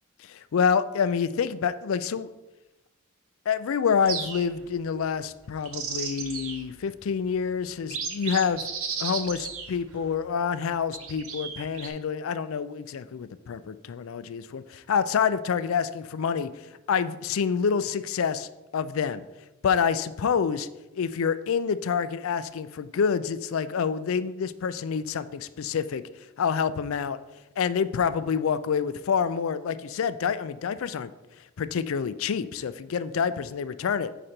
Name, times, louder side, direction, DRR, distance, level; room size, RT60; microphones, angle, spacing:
voice 1, 0.2-2.3 3.5-8.6 9.0-16.5 16.9-19.2 19.6-20.7 20.9-26.0 26.4-27.2 27.6-31.1 31.6-34.1, left 6 dB, 70° left, 13 dB, 0.4 m, -27 dB
sound 1, 4.1-4.7 5.4-6.7 7.3-7.4 7.8-10.1 10.9-11.9, right 6 dB, 70° right, 0.9 m, -34 dB
6.5 x 4.9 x 4.3 m, 1.0 s
head